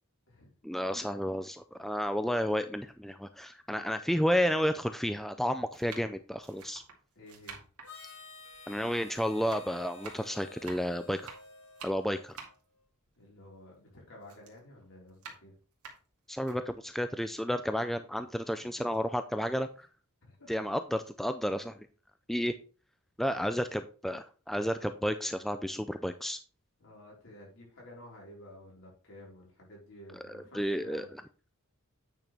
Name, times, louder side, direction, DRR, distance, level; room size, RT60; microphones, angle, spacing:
voice 1, 0.6-6.8 8.7-11.3 11.8-12.3 16.3-19.9 20.5-21.9 22.3-22.5 23.2-26.4 30.3-31.1, equal, ahead, 9 dB, 0.3 m, -31 dB
sound 1, 2.9-3.0 3.9-4.0 4.9-5.2 5.7-9.1 9.3-13.9 14.2-16.6 17.1-17.2 17.5-18.5 18.8-19.0, right 5 dB, 75° right, 2.2 m, -50 dB
voice 2, 7.1-7.7 13.2-15.5 18.6-19.0 20.2-20.7 23.3-23.4 26.8-31.1, left 1 dB, 60° left, -3 dB, 4.4 m, -52 dB
Harmonica, 7.8-12.6, left 2 dB, 80° left, 5.1 m, -51 dB
9.0 x 6.2 x 3.4 m, 0.38 s
head